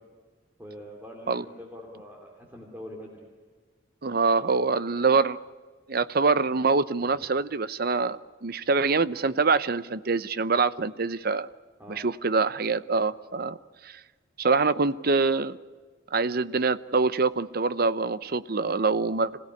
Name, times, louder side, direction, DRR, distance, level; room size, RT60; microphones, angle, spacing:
voice 1, 0.6-3.3 11.8-12.1, equal, 10° right, 0 dB, 3.0 m, -43 dB
voice 2, 4.0-5.4 5.9-11.5 11.9-13.6 13.8-14.0 14.4-15.6 16.1-19.4, right 4 dB, 55° right, 15 dB, 0.8 m, -25 dB
26.5 x 16.5 x 9.8 m, 1.5 s
head